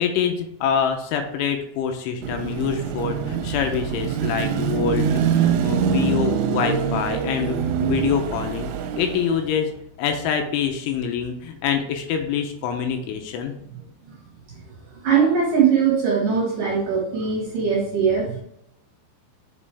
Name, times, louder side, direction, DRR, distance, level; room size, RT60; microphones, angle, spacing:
voice 1, 0.0-8.7 9.0-9.7 10.0-13.5, left 7 dB, 80° left, 5 dB, 3.0 m, -25 dB
Car passing by / Traffic noise roadway noise / Engine, 2.2-9.6, right 7 dB, 85° right, 3.1 m, -24 dB
voice 2, 15.0-18.4, right 6 dB, 60° right, -3 dB, 2.4 m, -20 dB
7.4 x 5.4 x 3.3 m, 0.76 s
omnidirectional pair, 5.7 m